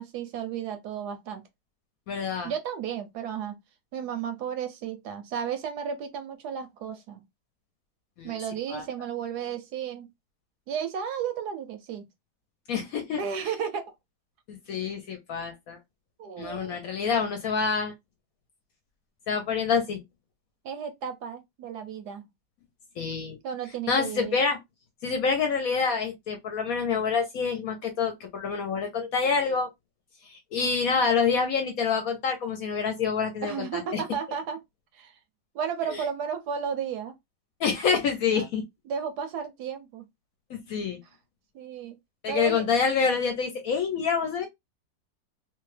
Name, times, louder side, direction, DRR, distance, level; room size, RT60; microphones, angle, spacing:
voice 1, 0.0-1.4 2.4-3.6 3.9-7.2 8.2-10.1 10.7-12.1 13.2-13.9 16.2-16.8 20.6-22.2 23.4-24.4 33.4-34.6 34.9-35.1 35.5-37.1 38.3-38.5 38.9-40.1 41.5-42.0 42.3-42.7, right 7 dB, 70° right, 1.0 m, -33 dB
voice 2, 2.1-2.5 8.2-8.4 8.7-8.8 12.7-13.2 14.5-15.8 16.4-17.9 19.3-20.0 23.0-23.4 23.9-24.6 25.0-29.7 30.3-34.0 35.9-36.0 37.6-38.6 40.5-41.0 42.2-44.5, left 5 dB, 65° left, 1.0 m, -27 dB
2.9 x 2.3 x 3.2 m
omnidirectional pair, 1.9 m